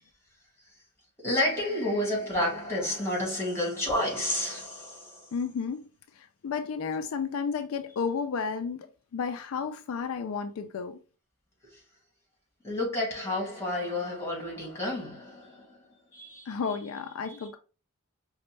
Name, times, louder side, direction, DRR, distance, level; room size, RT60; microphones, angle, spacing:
voice 1, 1.2-5.3 12.6-15.8 16.1-16.5 17.2-17.5, left 1 dB, 10° left, 1.8 m, -30 dB
voice 2, 5.3-5.9 6.1-8.9 9.1-11.0 16.5-17.6, left 5 dB, 65° left, 0.3 m, -32 dB
5.0 x 2.2 x 3.1 m
head